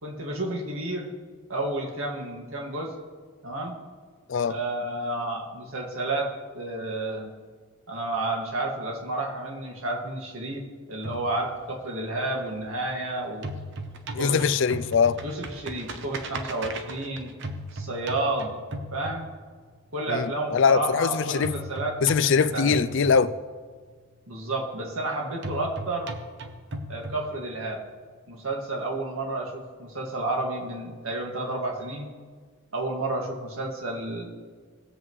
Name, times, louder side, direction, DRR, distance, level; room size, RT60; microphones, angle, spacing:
voice 1, 0.0-1.1 1.5-2.9 3.4-3.8 4.5-7.3 7.9-10.6 10.9-13.5 14.1-14.4 15.2-17.3 17.7-18.5 18.9-19.3 19.9-22.0 22.2-22.8 24.3-26.1 26.9-27.8 28.3-32.1 32.7-34.3, right 2 dB, 80° right, 2.0 m, -31 dB
sound 1, 11.0-13.0 13.3-19.8 21.4-23.8 25.4-27.8, right 1 dB, 60° right, 0.9 m, -37 dB
voice 2, 14.1-15.2 20.1-21.5 22.0-23.3, left 6 dB, 60° left, 0.4 m, -22 dB
19.0 x 7.7 x 3.2 m
head